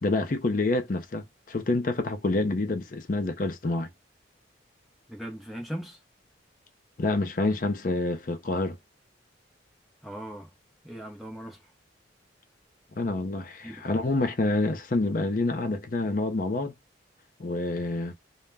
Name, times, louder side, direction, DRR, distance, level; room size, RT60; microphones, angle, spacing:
voice 1, 0.0-3.9 7.0-8.8 13.0-16.7 17.4-18.1, left 2 dB, 45° left, 0.5 m, -27 dB
voice 2, 5.1-6.0 10.0-10.5 10.8-11.7 13.6-13.9, right 1 dB, ahead, 0.6 m, -39 dB
2.2 x 2.1 x 3.3 m
head